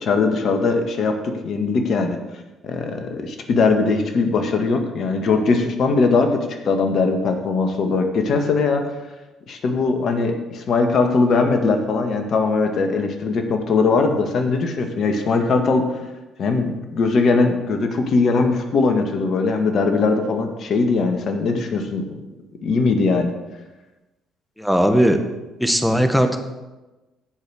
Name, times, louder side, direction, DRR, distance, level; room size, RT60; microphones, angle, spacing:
voice 1, 0.0-2.2 2.6-8.8 9.5-15.9 16.4-22.1 22.6-23.4, left 4 dB, 55° left, 5 dB, 1.8 m, -20 dB
voice 2, 24.6-25.2 25.6-26.4, equal, ahead, 6 dB, 1.7 m, -17 dB
16.0 x 5.5 x 6.5 m, 1.1 s
hypercardioid pair, 50°, 0 cm